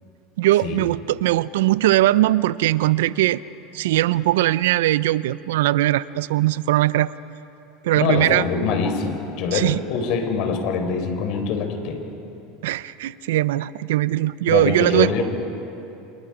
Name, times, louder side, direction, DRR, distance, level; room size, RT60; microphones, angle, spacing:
voice 1, 0.4-3.4 3.7-7.1 7.8-8.4 9.5-9.8 12.6-15.1, right 15 dB, 80° right, 18 dB, 0.5 m, -20 dB
voice 2, 8.0-12.0 14.5-15.2, left 5 dB, 60° left, 5 dB, 4.2 m, -24 dB
29.5 x 28.5 x 5.0 m, 2.9 s
supercardioid pair, 110°, 0 cm